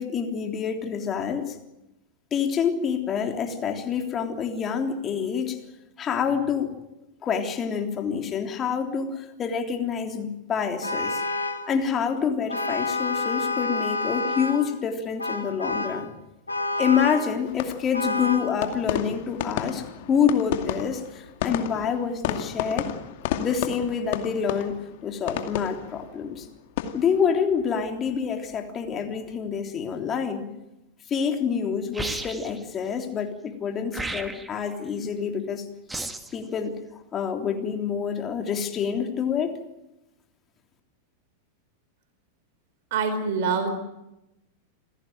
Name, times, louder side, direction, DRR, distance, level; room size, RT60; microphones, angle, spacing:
voice 1, 0.0-1.6 2.3-5.6 6.0-6.8 7.2-11.2 11.7-16.1 16.8-22.9 23.4-26.5 26.9-30.5 31.1-35.7 36.3-39.6, left 7 dB, 25° left, 4 dB, 3.4 m, -27 dB
Vehicle horn car horn honking, 10.8-11.7 12.5-14.7 15.2-16.0 16.5-17.3 17.9-18.5, left 2 dB, 80° left, 2.6 m, -28 dB
sound 1, 17.4-28.6 28.9-29.4, left 10 dB, 50° left, 2.3 m, -33 dB
sound 2, 31.9-32.6 33.9-34.6 35.9-36.4, right 2 dB, 10° right, 2.0 m, -33 dB
voice 2, 42.9-43.7, right 5 dB, 50° right, 8 dB, 4.2 m, -25 dB
27.5 x 17.0 x 9.2 m, 0.94 s
figure-of-eight pair, 90°, 0 cm